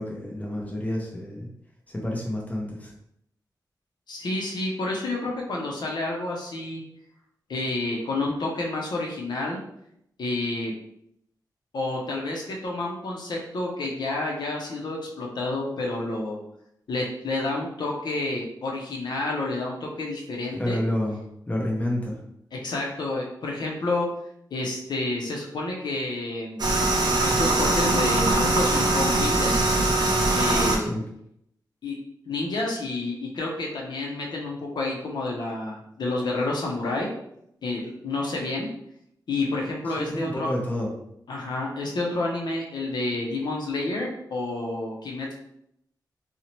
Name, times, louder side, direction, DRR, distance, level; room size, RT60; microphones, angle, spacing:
voice 1, 0.0-1.5 1.9-2.9 20.6-21.2 21.5-22.1 30.8-31.0 40.0-40.9, left 1 dB, 20° left, -2 dB, 0.6 m, -29 dB
voice 2, 4.1-6.8 7.5-9.6 10.2-10.7 11.7-16.4 16.9-20.8 22.5-24.1 24.5-26.7 27.2-29.6 30.3-30.9 31.8-32.0 32.3-37.1 37.6-38.7 39.3-40.5 41.3-45.3, left 2 dB, 70° left, -1 dB, 0.5 m, -29 dB
sound 1, 26.6-30.8, right 2 dB, 70° right, 0.5 m, -22 dB
2.6 x 2.0 x 2.9 m, 0.75 s
wide cardioid pair, 105°, 8 cm